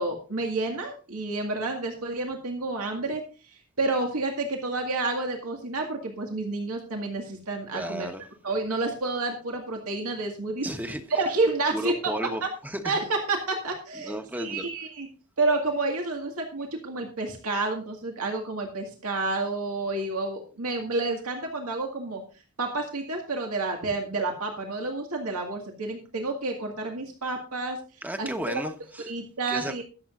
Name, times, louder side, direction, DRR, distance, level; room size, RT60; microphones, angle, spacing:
voice 1, 0.0-8.1 8.4-10.7 11.1-12.1 12.4-12.5 12.8-15.1 15.4-22.2 22.6-27.8 28.2-28.6 29.1-29.8, right 3 dB, 90° right, 2.0 m, -29 dB
voice 2, 7.7-8.2 10.6-11.0 11.7-13.0 13.9-14.7 28.0-29.1 29.5-29.8, right 1 dB, 10° right, 1.2 m, -33 dB
22.5 x 7.7 x 2.6 m
head